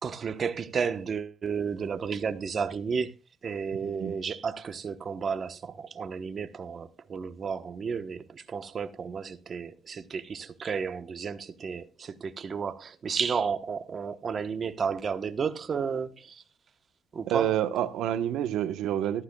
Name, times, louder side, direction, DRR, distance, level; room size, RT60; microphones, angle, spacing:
voice 1, 0.0-3.1 3.4-16.4 17.1-17.6, right 6 dB, 45° right, 1.0 m, -32 dB
voice 2, 3.8-4.1 17.3-19.2, right 11 dB, 85° right, 1.0 m, -28 dB
14.0 x 12.5 x 2.3 m
cardioid pair, 90°, 0 cm